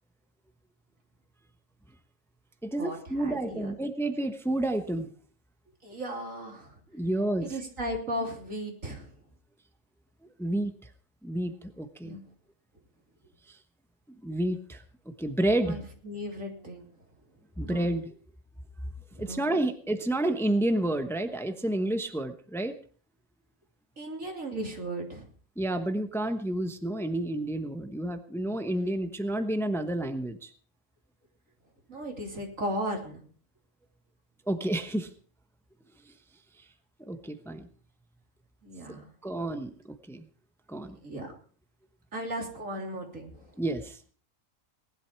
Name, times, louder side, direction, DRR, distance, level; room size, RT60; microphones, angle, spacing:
voice 1, 2.6-5.1 6.9-7.6 10.4-10.7 11.2-12.1 13.5-13.6 14.2-14.8 15.2-15.8 17.6-18.0 19.2-22.7 25.6-30.5 34.5-35.1 37.1-37.7 39.2-40.2 40.7-41.0 43.6-44.0, right 1 dB, ahead, 8 dB, 1.0 m, -30 dB
voice 2, 3.2-3.7 5.8-6.8 7.4-9.1 12.0-12.2 15.7-16.9 17.6-17.9 19.2-19.5 24.0-25.3 31.9-33.2 38.6-39.1 41.0-41.3 42.1-43.5, equal, 85° right, 2 dB, 3.6 m, -36 dB
19.0 x 11.5 x 4.6 m, 0.43 s
omnidirectional pair, 1.3 m